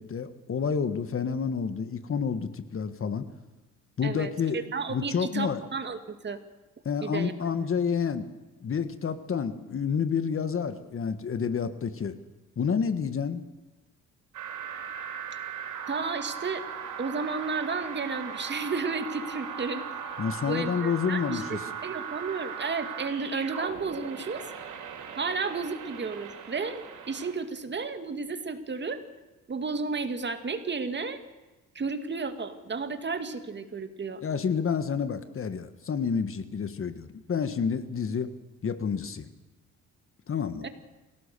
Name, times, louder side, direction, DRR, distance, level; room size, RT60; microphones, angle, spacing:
voice 1, 0.0-3.3 4.0-4.6 4.9-5.6 6.8-8.3 8.6-12.2 12.6-13.4 20.2-21.6 34.2-38.3 38.6-39.3 40.3-40.7, left 6 dB, 45° left, 11 dB, 1.6 m, -29 dB
voice 2, 4.0-6.4 7.0-7.3 15.9-16.6 17.0-19.8 20.5-24.5 25.2-29.0 29.5-31.2 31.7-34.2 40.6-40.7, right 4 dB, 35° right, 8 dB, 2.3 m, -32 dB
sound 1, 14.3-27.3, right 7 dB, 80° right, 4.4 m, -38 dB
27.5 x 17.0 x 6.9 m, 1.2 s
cardioid pair, 90°, 30 cm